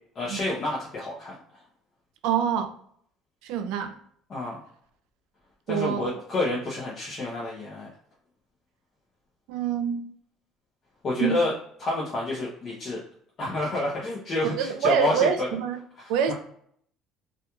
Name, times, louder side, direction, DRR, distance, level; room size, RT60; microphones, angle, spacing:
voice 1, 0.2-1.3 4.3-4.6 5.7-7.9 11.0-11.5 11.8-13.0 13.4-15.5 16.3-16.4, left 2 dB, 40° left, 0.6 m, -28 dB
voice 2, 2.2-2.7 3.4-4.0 5.7-6.1 9.5-10.0 11.2-11.4 14.4-15.8 16.1-16.3, right 7 dB, 80° right, 0.3 m, -26 dB
2.9 x 2.4 x 2.2 m
cardioid pair, 125°, 0 cm